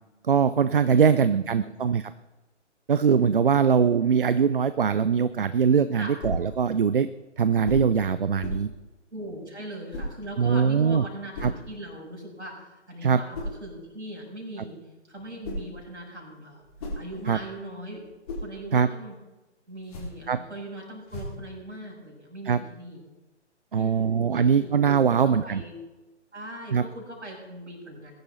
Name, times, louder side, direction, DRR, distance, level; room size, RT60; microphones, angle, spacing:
voice 1, 0.2-2.1 2.9-7.1 7.4-8.7 10.4-11.0 11.4-11.5 13.0-13.2 17.3-17.4 18.7-18.9 20.3-20.4 22.5-22.6 23.7-25.6 26.7-26.8, right 6 dB, 50° right, 14 dB, 0.5 m, -22 dB
voice 2, 0.9-1.4 5.9-6.5 9.1-14.8 15.1-18.0 18.4-19.1 19.7-23.0 23.7-24.7 25.1-25.8 26.3-28.1, right 1 dB, 75° right, -1 dB, 6.1 m, -40 dB
sound 1, 6.2-6.5 7.6-7.9 8.4-8.7 9.9-10.2 11.3-11.6 13.3-13.6 15.2-15.8 16.5-17.5 17.9-18.5 19.7-20.3 21.1-21.5, equal, 30° left, 4.7 m, -35 dB
20.5 x 10.5 x 4.0 m, 1.1 s
figure-of-eight pair, 135°, 35 cm